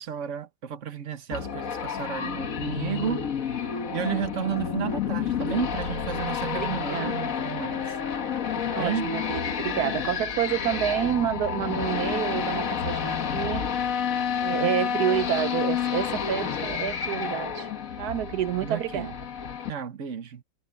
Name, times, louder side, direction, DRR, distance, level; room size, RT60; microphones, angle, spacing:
voice 1, 0.0-7.9 8.6-9.0 14.5-15.0 18.6-19.1 19.7-20.4, right 8 dB, 45° right, 1.4 m, -33 dB
sound 1, 1.3-19.7, left 7 dB, 45° left, 1.6 m, -30 dB
voice 2, 6.6-7.2 8.7-13.6 14.4-17.7 18.0-19.1, right 11 dB, 65° right, 1.0 m, -29 dB
omnidirectional pair, 2.2 m